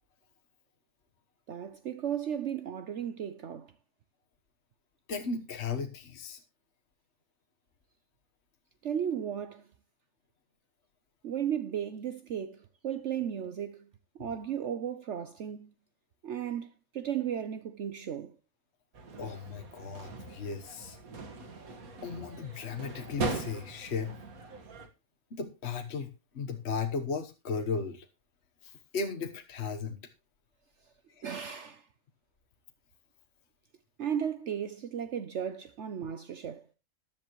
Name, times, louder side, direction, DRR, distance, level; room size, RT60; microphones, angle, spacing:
voice 1, 1.5-3.7 8.8-9.7 11.2-13.9 14.2-15.7 16.2-18.4 31.2-31.9 34.0-36.7, right 9 dB, 60° right, 1.0 m, -35 dB
voice 2, 5.1-6.4 19.2-21.0 22.0-24.1 25.3-26.1 26.3-28.0 28.6-30.0 31.2-31.3, left 5 dB, 50° left, 1.4 m, -36 dB
sound 1, 18.9-24.9, right 3 dB, 85° right, 2.1 m, -40 dB
14.5 x 10.5 x 3.1 m
omnidirectional pair, 1.5 m